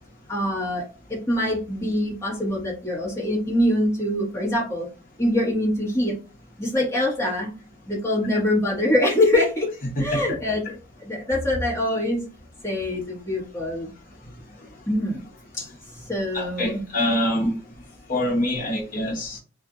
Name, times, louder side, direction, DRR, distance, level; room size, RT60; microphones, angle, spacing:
voice 1, 0.3-0.8 1.1-4.9 5.2-6.1 6.6-7.5 7.9-9.7 10.0-10.7 11.0-12.2 12.6-13.9 14.9-15.2 16.1-16.8, left 1 dB, 15° left, -4 dB, 1.2 m, -24 dB
voice 2, 16.3-17.5 18.1-19.4, left 1 dB, 45° left, -1 dB, 0.9 m, -25 dB
2.6 x 2.5 x 2.4 m, 0.35 s
head